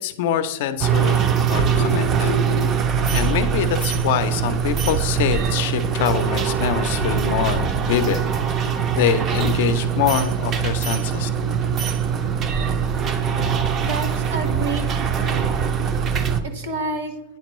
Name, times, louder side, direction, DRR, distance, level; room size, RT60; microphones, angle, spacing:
voice 1, 0.0-2.4 3.1-8.3 8.9-11.3, left 9 dB, 60° left, 11 dB, 0.5 m, -24 dB
sound 1, 0.8-16.4, right 8 dB, 25° right, 0.4 m, -23 dB
Vehicle, 1.0-16.4, right 1 dB, 60° right, 0.8 m, -31 dB
voice 2, 13.8-14.8 15.2-15.5 16.4-17.1, right 2 dB, 75° right, 7 dB, 1.2 m, -29 dB
9.2 x 4.4 x 3.0 m, 1.0 s
supercardioid pair, 155°, 0 cm